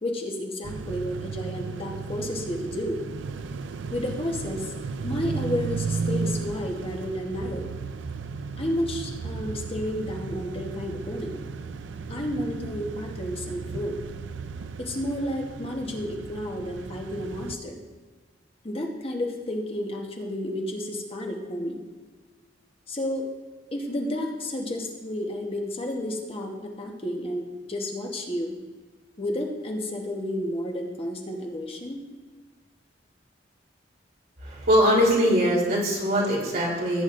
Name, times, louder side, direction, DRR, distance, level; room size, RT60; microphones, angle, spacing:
voice 1, 0.0-3.0 3.9-4.7 5.0-7.7 8.6-11.4 12.1-14.0 14.8-17.8 18.6-21.8 22.9-23.2 23.7-28.6 29.2-32.0, left 1 dB, 30° left, 1 dB, 1.1 m, -31 dB
sound 1, 0.6-17.6, right 4 dB, 75° right, 0.4 m, -35 dB
voice 2, 34.4-37.0, equal, 50° right, -5 dB, 3.1 m, -22 dB
17.0 x 8.5 x 2.5 m, 1.3 s
head